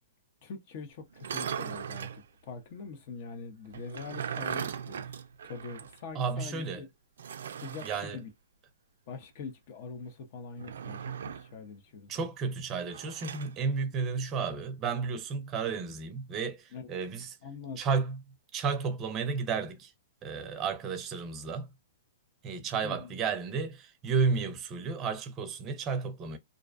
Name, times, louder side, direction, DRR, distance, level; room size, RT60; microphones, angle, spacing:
voice 1, 0.4-6.9 7.6-8.3 9.1-12.3 16.7-16.9 17.4-17.8 22.8-23.2, left 4 dB, 50° left, 0.7 m, -44 dB
sound 1, 1.1-2.2 3.7-6.0 6.3-6.4 7.2-8.1 10.6-11.5 12.9-13.5, right 8 dB, 80° right, 0.3 m, -38 dB
voice 2, 6.1-6.8 7.8-8.2 12.1-17.4 17.8-18.2 18.5-19.9 20.2-21.7 22.4-26.4, right 5 dB, 25° right, 0.5 m, -32 dB
2.5 x 2.1 x 2.5 m
hypercardioid pair, 145°, 0 cm